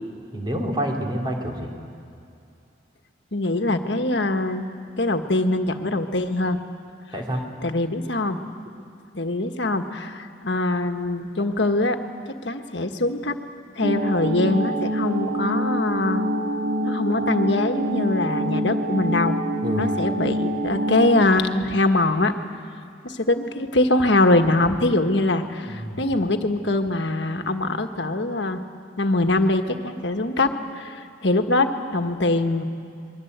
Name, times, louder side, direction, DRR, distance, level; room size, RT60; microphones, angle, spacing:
voice 1, 0.3-1.7 7.1-7.5 19.6-19.9 25.7-26.0, equal, 25° right, 0 dB, 3.2 m, -28 dB
voice 2, 3.3-4.7 5.0-6.6 7.6-8.4 9.1-12.0 12.3-13.4 13.7-16.2 16.8-19.4 19.8-22.3 23.0-28.6 29.0-32.6, left 2 dB, 65° left, 6 dB, 1.5 m, -23 dB
sound 1, 13.8-21.3, equal, 55° right, 1.8 m, -25 dB
28.0 x 22.5 x 8.1 m, 2.6 s
head